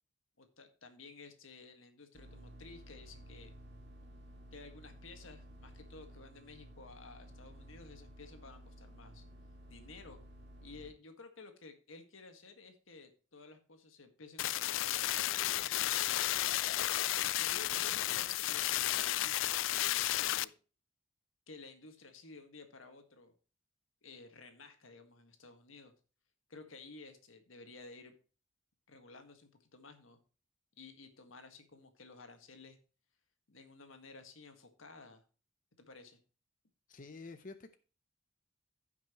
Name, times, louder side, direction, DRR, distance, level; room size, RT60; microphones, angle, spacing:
voice 1, 0.4-3.5 4.5-9.2 9.7-10.2 10.6-15.9 17.3-20.5 21.5-23.3 24.0-25.9 26.5-28.2 28.9-30.2 30.8-32.8 33.5-35.2 35.8-36.2, left 3 dB, 90° left, 7 dB, 1.8 m, -54 dB
sound 1, 2.1-10.9, equal, 60° right, 2.5 m, -54 dB
sound 2, 14.4-20.4, left 15 dB, 70° left, 0.3 m, -33 dB
voice 2, 36.9-37.8, left 3 dB, 45° left, 9 dB, 0.7 m, -49 dB
15.0 x 5.9 x 3.0 m, 0.36 s
head